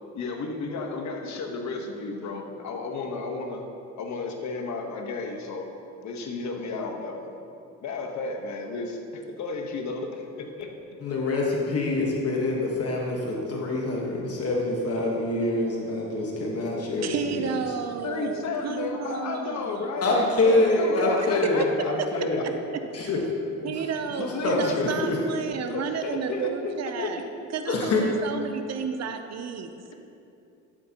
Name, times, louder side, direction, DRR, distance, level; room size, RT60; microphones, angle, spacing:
voice 1, 0.1-3.7 4.0-5.7 6.0-7.3 7.8-10.7 18.0-22.4 24.2-25.0 25.7-27.1 29.9-30.0, left 3 dB, 70° left, 3 dB, 1.2 m, -33 dB
voice 2, 11.0-17.4 20.0-22.4 22.9-23.2 24.4-25.2 27.7-28.0, left 2 dB, 50° left, -2 dB, 1.4 m, -25 dB
voice 3, 17.0-19.9 21.4-21.5 22.4-23.1 23.6-27.3 27.5-29.9, right 6 dB, 60° right, 8 dB, 0.6 m, -32 dB
12.5 x 7.4 x 2.9 m, 2.6 s
cardioid pair, 90°, 30 cm